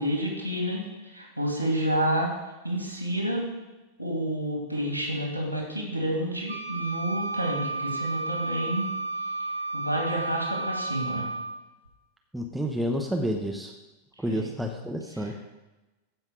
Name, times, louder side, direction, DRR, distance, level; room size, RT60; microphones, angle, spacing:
voice 1, 0.0-2.3 2.6-3.5 4.0-8.9 9.7-11.3 14.2-14.5 15.1-15.3, right 1 dB, 85° left, 0 dB, 2.6 m, -29 dB
Wind instrument woodwind instrument, 6.5-11.6, right 3 dB, 80° right, 1.1 m, -32 dB
voice 2, 12.3-13.7 14.2-15.3, equal, 5° right, 2 dB, 0.9 m, -29 dB
15.0 x 5.7 x 4.7 m, 1.1 s
figure-of-eight pair, 90°, 0 cm